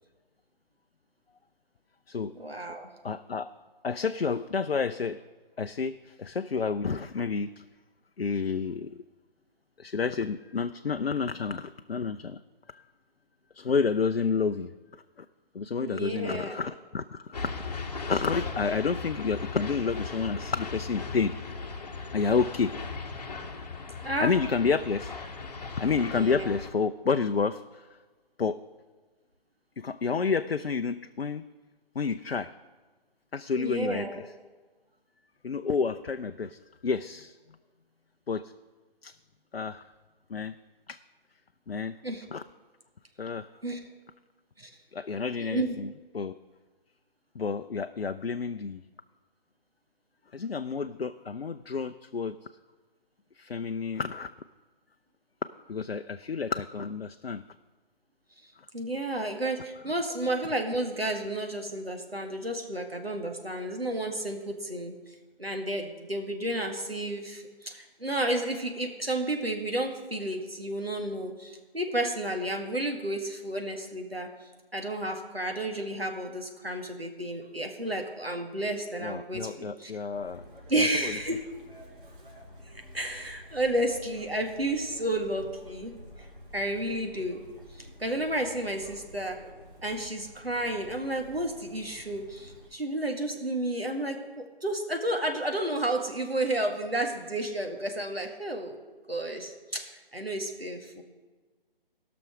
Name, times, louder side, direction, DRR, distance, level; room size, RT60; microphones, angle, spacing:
voice 1, 2.3-2.9 15.8-16.6 24.0-24.3 26.1-26.5 33.6-34.2 42.0-42.2 43.6-43.8 44.6-44.7 45.4-45.8 58.7-79.9 80.7-81.4 82.7-86.0 86.5-87.4 87.8-89.4 89.8-98.8 99.1-101.0, right 1 dB, 90° right, 3 dB, 1.9 m, -32 dB
voice 2, 3.0-3.5 3.8-5.2 5.6-7.6 8.2-8.9 9.8-12.4 12.7-12.8 13.5-14.7 15.2-15.3 15.5-17.7 18.0-21.3 22.1-22.7 24.2-25.1 25.8-27.9 28.4-28.6 29.8-31.4 32.0-32.5 33.3-34.2 35.4-37.4 38.3-38.5 39.0-39.1 39.5-39.8 40.3-40.5 40.9-41.0 41.7-41.9 42.3-42.4 43.2-43.5 44.9-46.4 47.4-48.8 50.3-52.4 53.4-54.3 55.7-57.4 79.0-80.4 80.7-81.1, left 5 dB, 85° left, 9 dB, 0.5 m, -30 dB
sound 1, 17.3-26.7, left 4 dB, 45° left, 1.1 m, -37 dB
Chirp tweet, 80.1-92.7, equal, 55° right, 3.4 m, -50 dB
15.0 x 6.1 x 6.2 m, 1.3 s
figure-of-eight pair, 145°, 29 cm